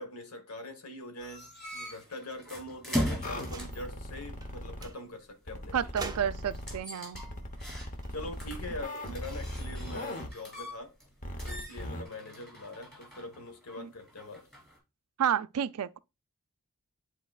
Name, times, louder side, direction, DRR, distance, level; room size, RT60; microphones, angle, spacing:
voice 1, 0.0-5.9 7.2-7.7 8.1-10.9 11.4-14.5, left 2 dB, 75° left, 1.4 m, -43 dB
sound 1, 1.2-3.9 6.5-8.1 8.4-11.1 11.4-14.8, equal, ahead, 2.9 m, -39 dB
sound 2, 3.2-4.9 5.5-6.8 7.1-10.3 11.2-12.0, left 1 dB, 35° left, 1.0 m, -39 dB
sound 3, 3.4-3.9 4.4-4.5 4.8-5.0 6.0-6.6 7.8-8.9, right 3 dB, 15° right, 0.6 m, -44 dB
voice 2, 5.7-7.2 13.8-13.9 15.2-16.0, right 8 dB, 80° right, 0.4 m, -30 dB
10.0 x 4.1 x 2.4 m
head